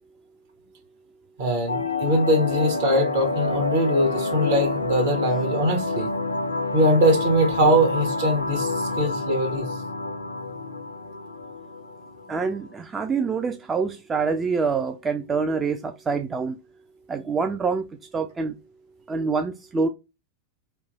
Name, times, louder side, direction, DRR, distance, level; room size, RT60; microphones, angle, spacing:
voice 1, 1.4-6.1 6.7-9.7, equal, 55° right, 1.2 m, -22 dB
sound 1, 1.7-12.7, left 3 dB, 80° left, 0.3 m, -28 dB
voice 2, 12.3-16.6 17.1-17.9 18.1-18.6 19.1-19.9, right 5 dB, 20° right, 0.3 m, -26 dB
2.9 x 2.1 x 3.3 m
figure-of-eight pair, 90°, 0 cm